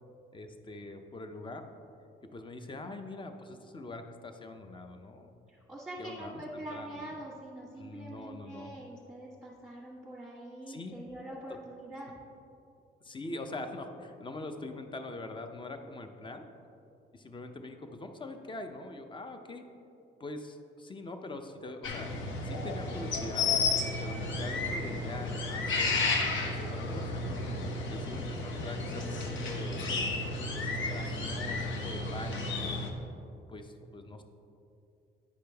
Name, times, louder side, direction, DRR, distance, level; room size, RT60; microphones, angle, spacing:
voice 1, 0.3-1.6 2.3-5.3 6.0-7.1 7.8-8.7 10.7-11.0 11.5-11.6 13.0-16.4 17.1-19.6 20.2-22.1 22.4-26.1 26.5-27.4 27.9-30.1 30.5-32.9 33.5-34.2, left 2 dB, 25° left, 7 dB, 0.6 m, -43 dB
voice 2, 5.5-12.1 28.8-29.6, right 1 dB, 5° right, -7 dB, 1.4 m, -44 dB
sound 1, 21.8-32.9, left 3 dB, 75° left, 0.9 m, -32 dB
9.4 x 5.1 x 3.4 m, 2.6 s
cardioid pair, 90°, 20 cm